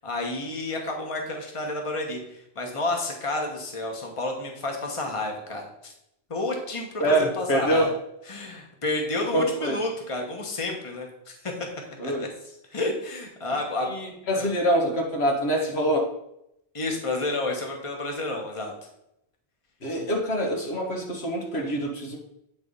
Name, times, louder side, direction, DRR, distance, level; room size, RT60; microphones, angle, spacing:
voice 1, 0.0-5.9 6.3-7.9 8.3-11.5 12.0-12.3 12.7-13.9 14.3-14.5 16.7-18.7, left 2 dB, 30° left, 1 dB, 1.3 m, -30 dB
voice 2, 7.0-7.9 9.3-9.8 12.0-12.2 13.9-16.1 19.8-22.2, equal, 75° left, 1 dB, 1.7 m, -25 dB
8.8 x 3.8 x 5.4 m, 0.79 s
omnidirectional pair, 1.1 m